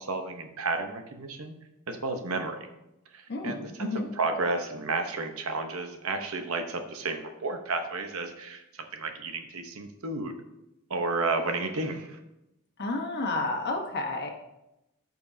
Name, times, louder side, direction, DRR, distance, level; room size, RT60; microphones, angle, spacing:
voice 1, 0.0-1.5 1.9-2.7 3.1-3.9 4.2-10.3 10.9-12.2, right 3 dB, 70° right, 6 dB, 0.9 m, -32 dB
voice 2, 3.3-4.1 12.8-14.3, left 2 dB, 50° left, 2 dB, 1.2 m, -31 dB
13.5 x 5.3 x 2.7 m, 0.91 s
head